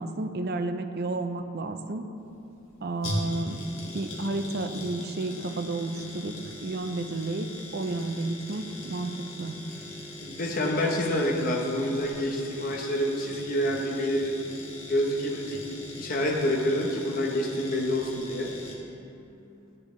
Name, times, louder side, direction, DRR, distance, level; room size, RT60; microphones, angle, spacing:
voice 1, 0.0-2.1 2.8-3.6 3.9-6.3 6.6-7.5 7.7-9.1 9.4-9.5, right 2 dB, 50° right, 7 dB, 0.5 m, -31 dB
sound 1, 2.2-18.7, left 1 dB, 85° left, 1.8 m, -40 dB
voice 2, 10.2-14.3 14.9-15.6 15.9-18.5, left 1 dB, 45° left, 0 dB, 1.0 m, -27 dB
11.0 x 8.8 x 3.1 m, 2.8 s
head